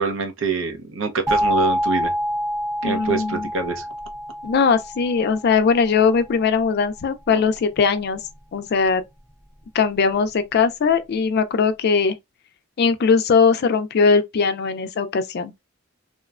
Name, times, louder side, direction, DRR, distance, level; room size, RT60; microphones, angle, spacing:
voice 1, 0.0-2.1 2.8-3.9, right 4 dB, 85° right, 0.7 m, -25 dB
sound 1, 1.3-6.0, equal, 15° right, 0.5 m, -26 dB
voice 2, 2.8-3.5 4.4-8.2 8.5-9.0 9.7-12.2 12.8-15.5, left 5 dB, 55° left, 0.4 m, -20 dB
2.9 x 2.1 x 2.3 m
head